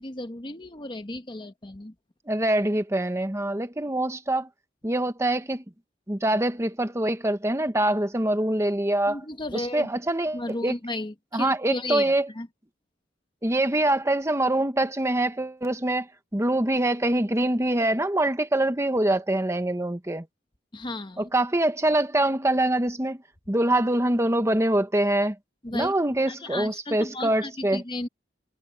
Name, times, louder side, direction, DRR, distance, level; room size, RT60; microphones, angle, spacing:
voice 1, 0.0-1.9 9.1-9.9 10.3-12.5 20.7-21.3 25.6-25.9 26.3-28.1, left 2 dB, 25° left, 1.2 m, -34 dB
voice 2, 2.3-4.5 4.8-5.6 6.1-9.2 9.5-10.7 11.3-12.3 13.4-20.3 21.2-23.2 23.5-25.4 25.7-27.8, right 1 dB, 15° right, 1.1 m, -24 dB
head